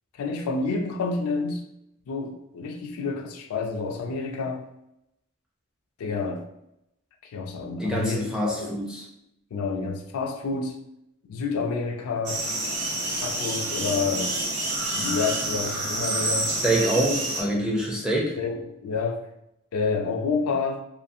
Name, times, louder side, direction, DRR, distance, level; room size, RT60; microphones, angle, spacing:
voice 1, 0.2-1.6 2.1-4.7 6.0-6.5 7.2-8.8 9.5-10.8 11.2-12.4 13.1-14.4 14.9-16.6 18.4-19.3 19.7-20.8, left 4 dB, 85° left, 4 dB, 0.4 m, -29 dB
voice 2, 7.8-9.1 16.5-18.4, right 1 dB, 5° right, -4 dB, 0.5 m, -25 dB
sound 1, 12.3-17.4, right 1 dB, 55° right, 0.7 m, -28 dB
2.5 x 2.4 x 2.6 m, 0.83 s
head